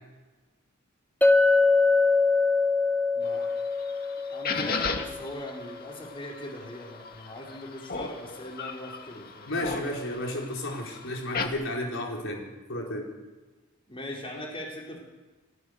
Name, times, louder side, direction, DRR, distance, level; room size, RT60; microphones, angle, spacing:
Chink clink, 1.2-5.4, left 3 dB, 10° left, 1.4 m, -23 dB
voice 1, 3.1-3.5 4.3-9.8 13.9-15.0, left 1 dB, 25° left, -2 dB, 4.7 m, -40 dB
sound 1, 3.2-11.5, left 4 dB, 45° left, 1.9 m, -37 dB
voice 2, 9.5-13.1, left 1 dB, 60° left, -1 dB, 5.0 m, -33 dB
29.5 x 15.5 x 6.8 m, 1.2 s
head